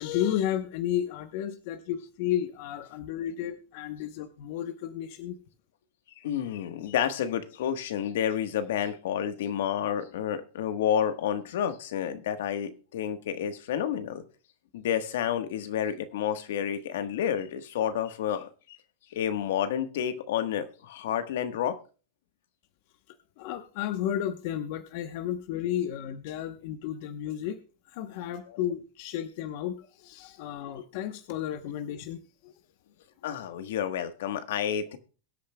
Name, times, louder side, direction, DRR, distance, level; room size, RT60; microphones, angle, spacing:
voice 1, 0.0-5.4 23.4-27.6 27.9-32.5, left 11 dB, 60° left, 8 dB, 0.9 m, -32 dB
voice 2, 6.2-14.2 14.7-18.8 19.1-21.8 28.5-28.6 33.2-35.0, left 9 dB, 75° left, 9 dB, 1.3 m, -30 dB
22.5 x 8.5 x 2.2 m, 0.37 s
supercardioid pair, 135°, 0 cm